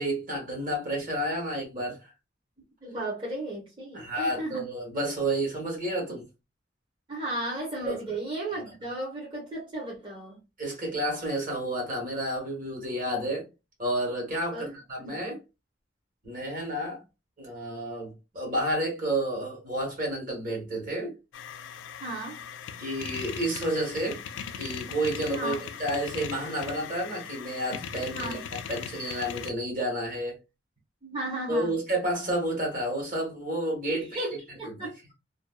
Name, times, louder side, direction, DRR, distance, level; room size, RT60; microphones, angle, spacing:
voice 1, 0.0-2.1 3.9-6.2 7.8-8.0 10.6-13.5 13.8-15.4 16.2-17.0 17.4-21.1 22.8-24.2 24.6-25.5 25.8-30.4 31.5-34.9, right 1 dB, 45° right, 1.3 m, -30 dB
voice 2, 2.8-4.6 7.1-10.4 14.5-15.2 22.0-22.4 25.3-25.6 28.1-28.4 31.0-31.7 33.9-34.3 34.6-34.9, right 1 dB, 25° right, 0.9 m, -35 dB
sound 1, 21.3-29.5, left 7 dB, 80° left, 0.3 m, -39 dB
2.5 x 2.2 x 2.2 m
head